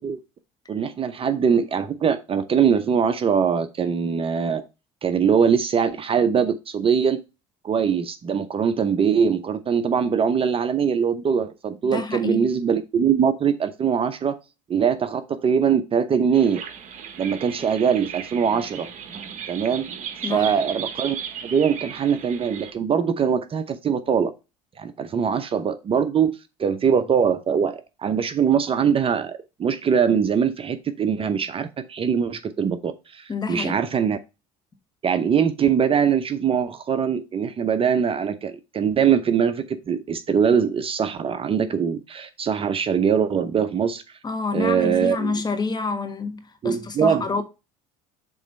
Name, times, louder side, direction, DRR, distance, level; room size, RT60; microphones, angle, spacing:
voice 1, 0.7-4.6 5.0-7.2 7.6-14.4 14.7-16.6 17.2-18.9 19.5-19.9 20.3-21.2 21.4-24.3 24.8-34.2 35.0-44.0 44.5-45.3 46.6-47.4, right 7 dB, 35° right, 0.7 m, -22 dB
voice 2, 11.8-12.5 20.2-20.6 33.3-33.8 44.2-47.4, left 4 dB, 25° left, 1.4 m, -28 dB
sound 1, 16.3-22.7, right 7 dB, 50° right, 1.3 m, -36 dB
7.2 x 3.1 x 5.4 m
supercardioid pair, 90°, 16 cm